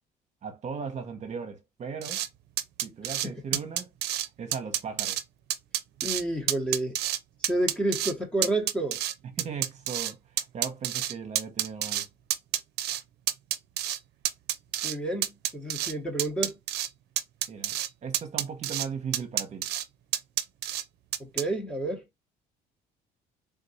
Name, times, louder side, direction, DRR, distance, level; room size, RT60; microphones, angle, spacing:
voice 1, 0.4-2.2 2.8-3.9 4.4-5.2 9.4-10.2 10.5-12.1 17.5-19.7, right 6 dB, 45° right, 0.9 m, -37 dB
sound 1, 2.0-2.3 2.6-3.3 3.5-4.3 4.5-5.2 5.5-6.2 6.5-7.2 7.4-8.1 8.4-10.1 10.4-12.1 12.3-13.0 13.3-14.0 14.3-15.0 15.2-15.9 16.2-16.9 17.2-17.9 18.1-18.9 19.1-19.8 20.1-20.8 21.1-21.4, right 13 dB, 75° right, 0.5 m, -29 dB
voice 2, 3.2-3.6 6.0-7.0 7.5-9.0 14.8-16.6 21.2-22.0, right 2 dB, 5° left, 1.1 m, -30 dB
3.7 x 2.5 x 4.1 m
cardioid pair, 110°, 17 cm